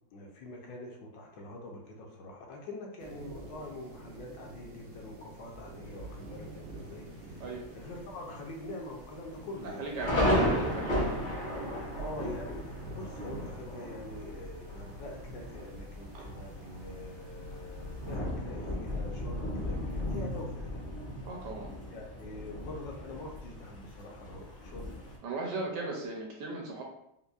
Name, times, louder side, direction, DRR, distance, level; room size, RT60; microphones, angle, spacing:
voice 1, 0.1-7.5 7.7-10.2 10.6-11.1 11.9-20.8 21.9-24.9, left 2 dB, 75° left, 0 dB, 1.2 m, -44 dB
sound 1, 3.0-18.2, right 2 dB, 90° right, 1.5 m, -48 dB
Thunder, 5.9-6.4 6.9-7.0 7.3-7.8 8.1-8.2 8.9-25.2, left 1 dB, 55° left, 0.5 m, -35 dB
voice 2, 9.6-11.0 12.2-12.3 21.3-21.7 25.2-26.8, right 3 dB, 70° right, 0 dB, 1.1 m, -37 dB
5.2 x 2.0 x 2.3 m, 0.79 s
omnidirectional pair, 2.2 m